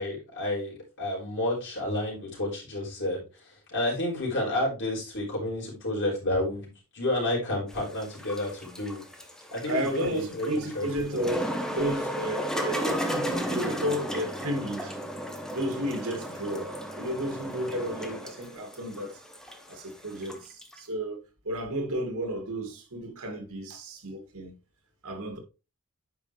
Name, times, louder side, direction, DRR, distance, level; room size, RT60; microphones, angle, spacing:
voice 1, 0.0-3.2 3.7-9.0 9.5-11.3, left 1 dB, 60° left, 4.6 m, -30 dB
sound 1, 7.7-20.8, equal, 5° left, 1.0 m, -34 dB
voice 2, 9.7-14.9 15.5-19.2 19.7-24.5 25.0-25.4, equal, 90° right, 2.3 m, -32 dB
9.5 x 5.4 x 3.2 m
head